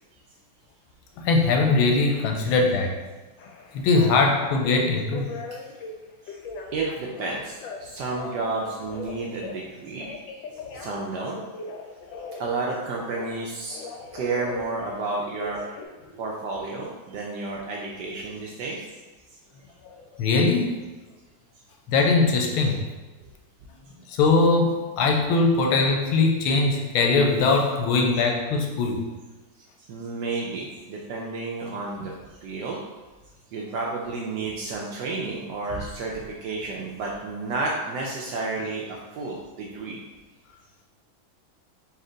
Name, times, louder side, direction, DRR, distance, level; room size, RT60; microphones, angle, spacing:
voice 1, 1.2-2.9 3.7-5.3 10.6-10.8 20.2-20.7 21.9-22.8 24.1-29.0, left 3 dB, 90° left, 1 dB, 1.5 m, -21 dB
Telephone, 3.4-5.9 6.3-7.8 8.1-9.6 10.0-13.4 13.7-15.9, left 4 dB, 75° left, 1.2 m, -39 dB
voice 2, 6.7-10.1 10.7-11.4 12.3-13.8 14.1-15.6 16.2-19.0 20.2-20.3 29.6-32.1 32.4-32.8 33.5-40.0, right 3 dB, 75° right, -2 dB, 1.0 m, -31 dB
4.3 x 2.9 x 3.8 m, 1.2 s
omnidirectional pair, 2.3 m